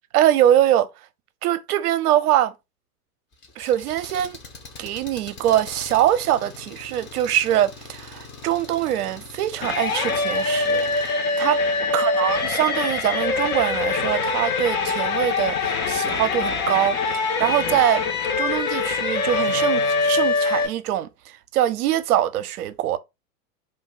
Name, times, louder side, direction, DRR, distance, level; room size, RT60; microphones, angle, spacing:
voice 1, 0.1-0.9 1.4-2.5 3.6-4.4 4.8-11.6 11.9-18.0 18.4-23.0, right 12 dB, 70° right, 0.6 m, -23 dB
Engine, 3.3-11.1, left 3 dB, 25° left, 0.7 m, -42 dB
sound 1, 9.6-20.7, left 4 dB, 60° left, 1.0 m, -23 dB
2.6 x 2.2 x 3.6 m
hypercardioid pair, 95°, 47 cm